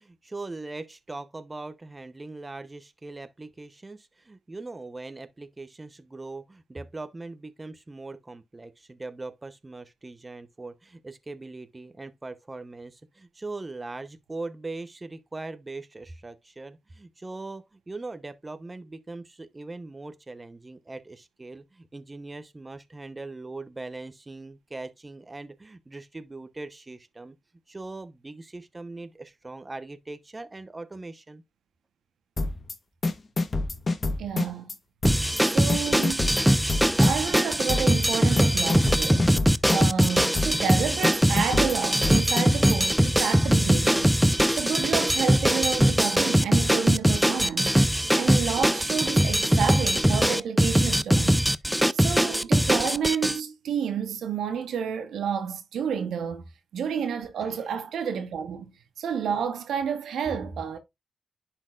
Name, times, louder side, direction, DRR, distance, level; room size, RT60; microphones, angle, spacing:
voice 1, 0.0-27.3 27.7-31.4 57.4-57.7, right 2 dB, 30° right, 0.9 m, -40 dB
sound 1, 32.4-32.7 33.0-34.8 35.0-35.4 35.7-37.4 37.7-38.1 38.4-40.1 40.4-40.8 41.0-42.8, left 2 dB, 50° left, 1.2 m, -27 dB
voice 2, 34.2-34.7 35.4-36.4 37.0-39.4 39.7-44.2 44.5-51.4 51.9-56.4 56.7-58.7 59.0-60.8, right 7 dB, 85° right, 1.1 m, -30 dB
sound 2, 35.0-53.4, equal, 5° right, 0.5 m, -22 dB
10.5 x 4.5 x 2.5 m
supercardioid pair, 45°, 0 cm